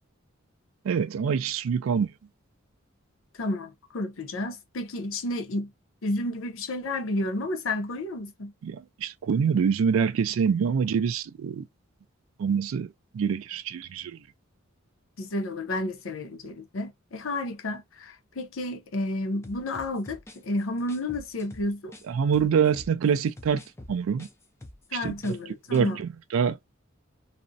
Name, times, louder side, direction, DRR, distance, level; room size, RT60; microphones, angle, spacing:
voice 1, 0.8-2.1 8.6-11.7 12.4-14.2 22.1-23.6 23.9-24.3 24.9-25.3 25.7-26.6, right 6 dB, 80° right, 0.3 m, -25 dB
voice 2, 3.4-5.7 6.0-8.5 15.2-21.9 24.9-26.0, left 1 dB, 75° left, 0.6 m, -31 dB
sound 1, 19.4-22.1 22.3-25.4 25.6-25.9, left 1 dB, 15° left, 0.4 m, -46 dB
2.4 x 2.0 x 2.6 m
head